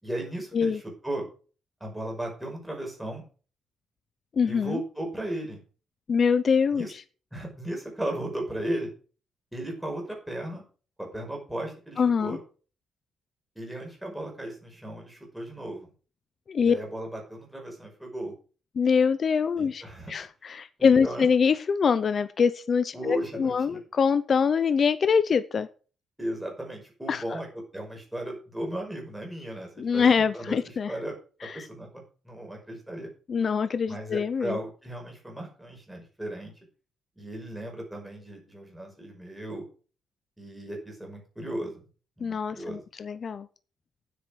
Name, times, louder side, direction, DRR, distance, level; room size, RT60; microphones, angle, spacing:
voice 1, 0.0-1.3 1.8-3.2 4.5-5.6 6.7-6.9 7.3-8.9 9.5-10.6 11.0-12.4 13.6-15.9 16.6-18.3 19.6-20.1 20.8-21.3 22.9-23.8 26.2-27.5 27.7-30.6 30.9-31.1 31.4-33.1 33.9-36.5 37.2-39.7 40.4-41.8 42.2-42.8, right 1 dB, 5° right, 0 dB, 5.5 m, -36 dB
voice 2, 4.4-4.8 6.1-7.0 12.0-12.4 16.5-16.7 18.8-19.8 20.1-25.7 27.1-27.2 29.8-30.9 31.4-31.7 33.3-34.6 42.2-43.5, left 6 dB, 35° left, 13 dB, 0.6 m, -24 dB
9.5 x 8.6 x 6.4 m, 0.38 s
cardioid pair, 155°, 0 cm